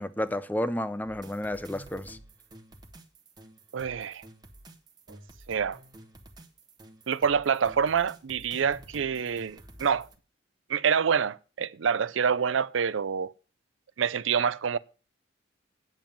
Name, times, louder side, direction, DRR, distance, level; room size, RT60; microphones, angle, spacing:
voice 1, 0.0-2.2, left 1 dB, 10° left, 0.5 m, -31 dB
sound 1, 1.0-10.2, right 1 dB, 20° right, 1.2 m, -50 dB
voice 2, 3.7-4.2 5.5-5.8 7.1-10.1 10.7-13.3 14.0-14.8, right 7 dB, 90° right, 0.5 m, -26 dB
8.9 x 7.2 x 7.5 m
head